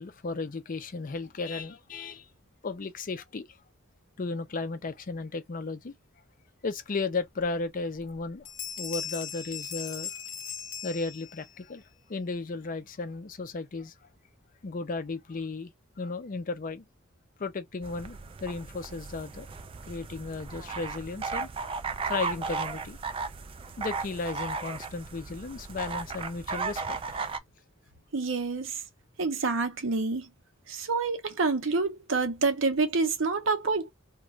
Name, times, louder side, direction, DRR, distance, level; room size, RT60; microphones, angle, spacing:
voice 1, 0.0-2.3 2.6-3.5 4.2-5.9 6.6-8.5 8.8-10.1 10.8-13.9 14.6-16.8 17.4-19.5 19.9-21.5 22.1-23.0 23.8-27.0, left 3 dB, 40° left, 0.5 m, -35 dB
Bell, 8.0-8.2 8.4-11.6, left 8 dB, 80° left, 0.6 m, -38 dB
flamants pilou, 17.8-27.4, right 4 dB, 25° right, 0.3 m, -36 dB
voice 2, 28.1-28.8 29.2-30.3 30.7-33.9, right 4 dB, 70° right, 0.7 m, -27 dB
2.5 x 2.2 x 3.1 m
head